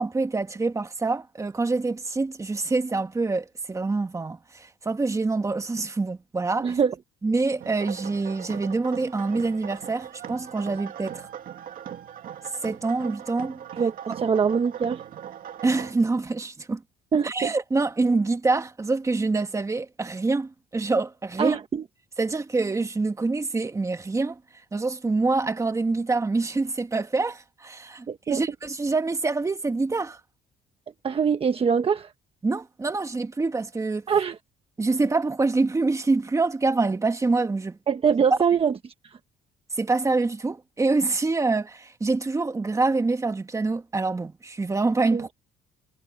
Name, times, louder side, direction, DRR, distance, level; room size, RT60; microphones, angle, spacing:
voice 1, 0.0-6.8 7.2-11.3 12.6-13.6 15.6-16.8 17.1-21.6 22.2-24.4 24.7-30.2 32.4-34.1 34.8-37.8 39.8-45.3, right 3 dB, 20° right, 1.9 m, -26 dB
voice 2, 6.6-6.9 13.8-15.0 17.1-17.5 21.4-21.8 28.1-28.4 31.0-32.1 34.1-34.4 37.9-38.8 39.0-39.2 45.1-45.2, right 6 dB, 35° right, 1.3 m, -23 dB
sound 1, 7.6-15.9, right 9 dB, 55° right, 2.4 m, -39 dB
cardioid pair, 110°, 17 cm